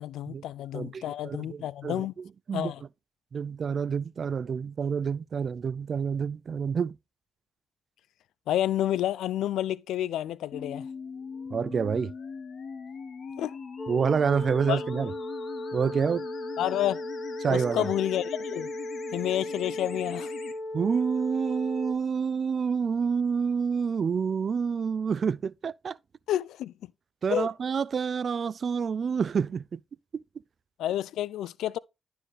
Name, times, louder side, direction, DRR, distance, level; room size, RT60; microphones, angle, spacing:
voice 1, 0.0-2.1 2.5-2.8 8.5-10.9 13.4-13.6 14.7-14.8 16.6-17.0 17.5-18.7 19.1-20.3 26.3-26.7 27.3-27.5 30.8-31.8, left 12 dB, 90° left, 0.3 m, -29 dB
voice 2, 0.7-2.1 2.5-2.7 3.3-6.9 11.5-12.1 13.9-15.1 15.7-16.3 17.4-17.9 20.7-25.9 27.2-29.8 30.1-30.2, right 6 dB, 60° right, 0.3 m, -28 dB
sound 1, 10.5-20.5, left 6 dB, 70° left, 1.4 m, -41 dB
sound 2, 13.8-21.9, left 1 dB, 45° left, 1.5 m, -36 dB
12.0 x 4.5 x 3.2 m
supercardioid pair, 55°, 0 cm